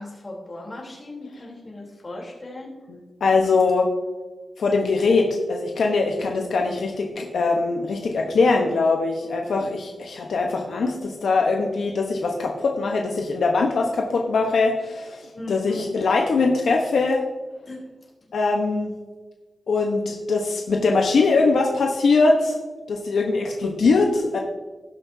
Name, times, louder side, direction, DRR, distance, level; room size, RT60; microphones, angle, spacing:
voice 1, 0.0-2.7 15.3-15.9 17.7-17.8, left 2 dB, 30° left, -2 dB, 3.3 m, -37 dB
voice 2, 3.2-3.9 4.6-17.2 18.3-18.9 19.7-22.6 22.9-24.4, left 3 dB, 80° left, 1 dB, 1.0 m, -22 dB
18.0 x 6.2 x 2.7 m, 1.3 s
wide cardioid pair, 120°, 0 cm